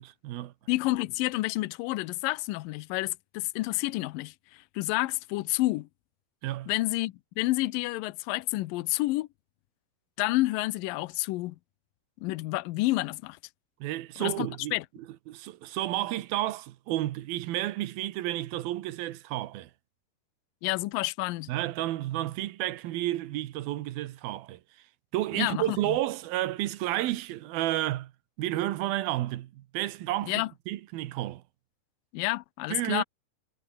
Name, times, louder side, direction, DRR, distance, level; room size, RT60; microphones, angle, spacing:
voice 1, 0.0-0.5 6.4-6.7 13.8-14.8 15.3-19.7 21.5-24.6 25.1-28.1 28.4-30.3 30.7-31.4 32.7-33.0, right 15 dB, 75° right, 2.8 m, -31 dB
voice 2, 0.7-5.9 6.7-9.3 10.2-11.6 12.2-13.4 14.2-14.8 20.6-21.5 25.3-26.0 30.3-30.5 32.1-33.0, left 19 dB, 75° left, 2.2 m, -29 dB
omnidirectional pair, 4.6 m